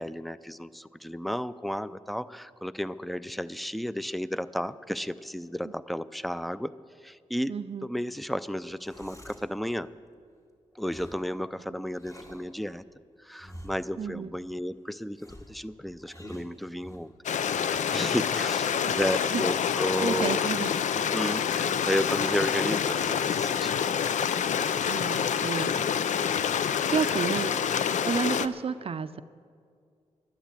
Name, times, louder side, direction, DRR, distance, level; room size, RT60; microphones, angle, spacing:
voice 1, 0.0-6.7 7.0-7.6 7.8-9.9 10.8-12.8 13.2-17.1 17.6-20.4 21.0-23.8 25.7-25.9, equal, ahead, 16 dB, 0.5 m, -33 dB
voice 2, 7.5-7.9 14.0-14.3 18.9-19.0 19.3-19.4 20.0-20.9 24.9-25.7 26.9-27.6 28.1-29.2, right 6 dB, 50° right, 12 dB, 0.5 m, -31 dB
sound 1, 8.6-9.5 10.8-11.3 11.9-12.5 13.4-14.0 15.2-17.1 17.7-18.3 19.0-19.5, equal, 25° left, 2.4 m, -47 dB
Stream, 17.2-28.5, left 8 dB, 75° left, 0.5 m, -27 dB
12.0 x 10.0 x 8.9 m, 2.2 s
cardioid pair, 55°, 13 cm